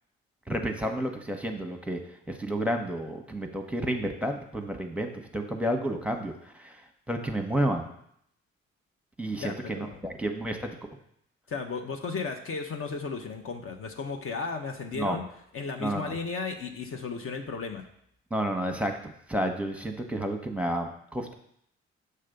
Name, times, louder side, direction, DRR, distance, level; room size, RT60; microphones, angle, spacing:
voice 1, 0.5-2.0 2.3-6.8 7.1-7.9 9.2-10.7 15.0-15.2 15.8-16.1 18.3-21.3, right 1 dB, 5° right, 4 dB, 1.0 m, -31 dB
voice 2, 9.4-10.0 11.5-15.2 15.5-17.8, left 4 dB, 45° left, 4 dB, 0.9 m, -34 dB
6.7 x 3.2 x 5.2 m, 0.70 s
hypercardioid pair, 45°, 30 cm